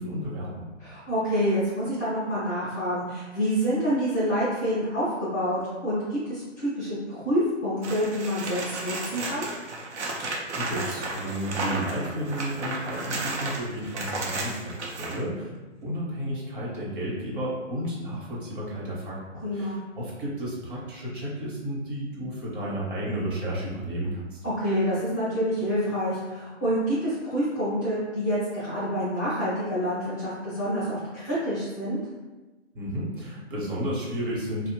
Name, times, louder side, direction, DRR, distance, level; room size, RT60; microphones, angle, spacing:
voice 1, 0.0-0.6 10.5-15.5 15.8-24.4 32.7-34.7, equal, 45° right, -5 dB, 0.9 m, -32 dB
voice 2, 0.8-9.5 19.4-19.8 24.4-32.0, equal, 15° left, -11 dB, 0.5 m, -27 dB
sound 1, 7.8-15.2 17.8-17.9, right 2 dB, 65° right, 0.6 m, -33 dB
2.8 x 2.0 x 3.0 m, 1.2 s
hypercardioid pair, 150°, 37 cm